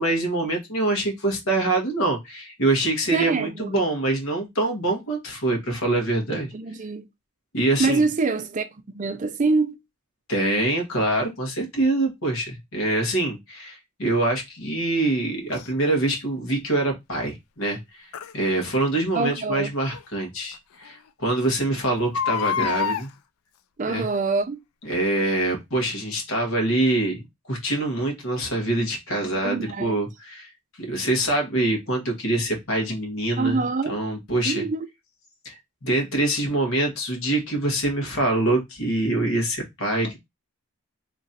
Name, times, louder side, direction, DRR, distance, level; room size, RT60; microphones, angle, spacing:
voice 1, 0.0-6.5 7.5-8.0 10.3-23.1 23.9-24.1 24.8-30.5 30.8-34.7 35.4-35.5 35.8-40.2, right 2 dB, 65° left, 1.3 m, -25 dB
voice 2, 3.1-3.8 6.3-7.1 7.8-8.7 8.9-9.8 19.1-19.7 23.8-24.6 29.4-30.0 33.4-34.0 34.5-34.9, right 3 dB, 35° right, 0.4 m, -25 dB
Crying sobbing, 15.5-15.7 18.1-18.3 19.9-20.0 20.5-20.6 20.9-21.0 22.0-23.1 24.0-24.4 24.9-25.0, left 7 dB, 90° left, 0.4 m, -27 dB
3.0 x 2.5 x 4.0 m
head